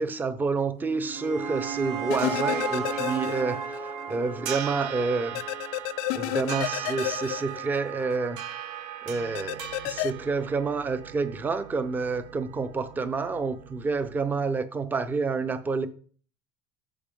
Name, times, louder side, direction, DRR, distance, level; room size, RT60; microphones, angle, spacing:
voice 1, 0.0-5.4 6.1-8.4 9.0-15.9, right 4 dB, 15° right, 0.6 m, -29 dB
sound 1, 0.8-6.0, right 6 dB, 65° right, 3.5 m, -34 dB
sound 2, 1.8-14.5, right 11 dB, 85° right, 0.8 m, -40 dB
sound 3, 2.1-3.8 4.1-4.2 5.3-8.2 9.3-10.1, left 18 dB, 85° left, 0.4 m, -31 dB
12.5 x 4.4 x 3.7 m
cardioid pair, 150°, 11 cm